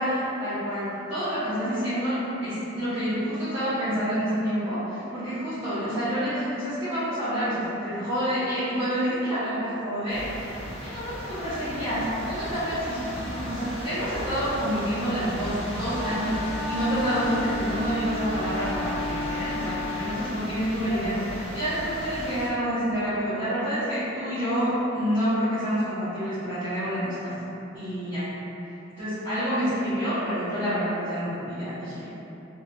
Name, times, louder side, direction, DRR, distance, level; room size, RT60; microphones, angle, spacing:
voice 1, 0.0-10.5 10.8-27.3 27.7-28.3 29.0-32.1, equal, 35° right, -17 dB, 0.8 m, -28 dB
sound 1, 10.1-22.5, equal, 30° left, 0.5 m, -36 dB
Wind instrument woodwind instrument, 15.7-20.2, left 3 dB, 70° right, 0.8 m, -34 dB
2.7 x 2.5 x 2.3 m, 3.0 s
head